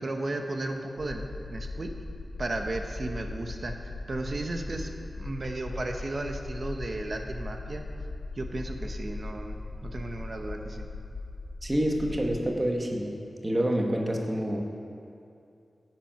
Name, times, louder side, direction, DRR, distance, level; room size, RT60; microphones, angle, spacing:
voice 1, 0.0-1.9 2.4-7.8 8.3-10.9, right 2 dB, 45° right, 4 dB, 1.0 m, -34 dB
sound 1, 1.0-12.4, left 2 dB, 70° left, 1.5 m, -39 dB
voice 2, 11.6-13.1 13.4-14.6, right 1 dB, 20° right, 1 dB, 1.2 m, -27 dB
16.5 x 7.7 x 5.7 m, 2.6 s
wide cardioid pair, 120°, 0 cm